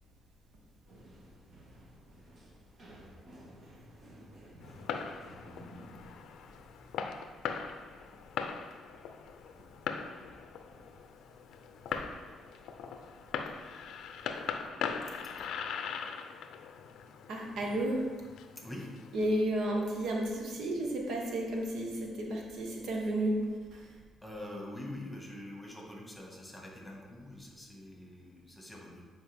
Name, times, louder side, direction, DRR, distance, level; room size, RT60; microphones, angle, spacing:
sound 1, 0.9-6.1, equal, 50° right, 1.7 m, -53 dB
Fireworks, 4.6-19.4, left 6 dB, 80° left, 0.5 m, -41 dB
voice 1, 15.2-15.6 18.5-19.0 24.2-29.0, left 1 dB, 5° left, -1 dB, 1.7 m, -45 dB
voice 2, 17.3-18.1 19.1-24.0, right 1 dB, 75° right, -1 dB, 1.3 m, -32 dB
9.0 x 4.7 x 3.5 m, 1.4 s
cardioid pair, 90°, 0 cm